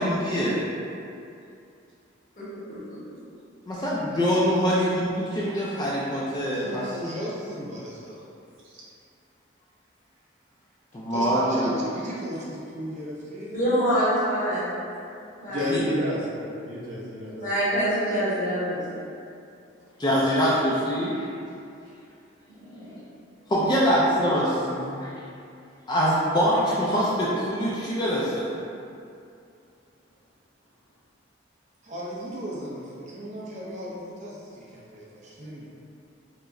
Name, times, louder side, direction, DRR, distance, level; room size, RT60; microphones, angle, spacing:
voice 1, 0.0-0.6 3.7-6.8 10.9-11.8 15.7-15.8 20.0-21.3 23.5-25.1 25.9-28.5, equal, 20° left, -7 dB, 0.3 m, -24 dB
voice 2, 2.4-3.0 13.5-14.7 15.4-15.6 17.3-19.0 22.6-22.7, equal, 40° left, -12 dB, 1.3 m, -25 dB
voice 3, 6.5-8.2 11.1-13.7 23.5-24.5 31.8-35.7, equal, 35° right, -6 dB, 0.5 m, -36 dB
voice 4, 15.5-17.4, left 1 dB, 85° right, -7 dB, 0.9 m, -30 dB
4.6 x 2.0 x 2.5 m, 2.5 s
head